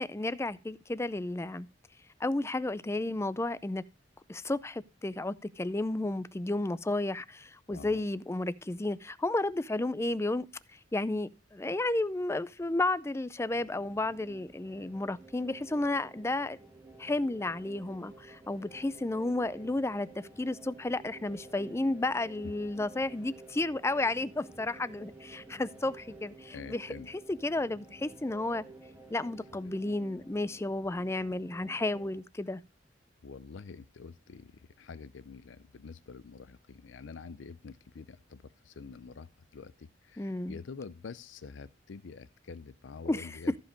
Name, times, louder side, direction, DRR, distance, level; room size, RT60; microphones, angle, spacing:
voice 1, 0.0-1.7 2.2-3.8 4.3-10.5 10.9-16.6 17.0-28.6 29.1-32.6 40.2-40.6 43.1-43.3, left 2 dB, 15° left, 0.4 m, -32 dB
voice 2, 7.7-8.0 26.5-27.1 33.2-43.6, left 5 dB, 90° left, 0.5 m, -47 dB
sound 1, 13.4-32.2, right 3 dB, 10° right, 1.7 m, -52 dB
14.5 x 5.3 x 5.1 m
head